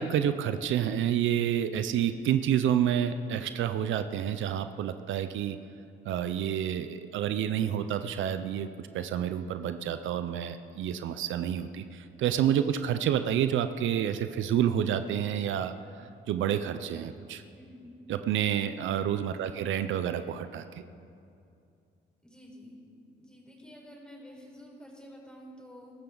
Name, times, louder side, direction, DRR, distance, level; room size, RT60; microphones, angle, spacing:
voice 1, 0.0-5.6 6.1-8.7 8.9-15.7 16.3-17.4 18.1-20.8, right 9 dB, 75° right, 10 dB, 0.6 m, -29 dB
voice 2, 17.5-18.0 19.2-19.5 22.2-22.8 23.1-25.9, equal, 5° left, -2 dB, 4.5 m, -50 dB
22.0 x 12.5 x 4.0 m, 2.5 s
cardioid pair, 90°, 20 cm